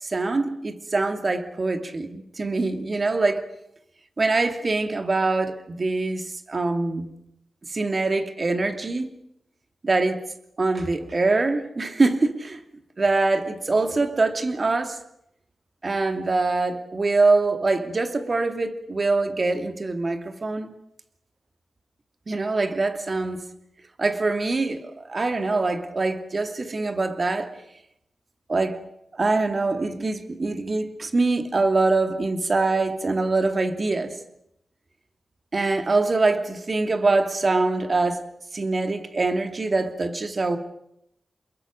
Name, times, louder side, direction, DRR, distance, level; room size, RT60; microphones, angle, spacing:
voice 1, 0.0-3.4 4.2-7.1 7.7-9.1 9.8-10.2 10.6-12.6 13.0-15.0 15.8-20.8 22.3-23.4 24.0-27.5 28.5-28.8 29.1-34.2 35.5-38.2 38.5-40.6, right 3 dB, 45° right, 2.6 m, -24 dB
29.5 x 21.5 x 6.6 m
wide cardioid pair, 80°, 0 cm